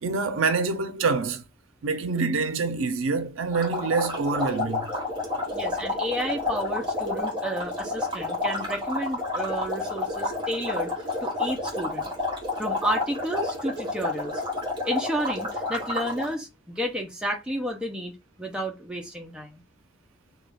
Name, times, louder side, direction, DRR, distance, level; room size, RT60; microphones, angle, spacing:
voice 1, 0.0-1.4 1.8-4.9, right 4 dB, 85° right, 0.4 m, -26 dB
sound 1, 3.5-16.3, left 2 dB, 25° right, 1.0 m, -30 dB
voice 2, 5.5-12.1 12.6-14.4 14.9-19.6, equal, 5° right, 0.4 m, -31 dB
2.3 x 2.2 x 3.2 m
head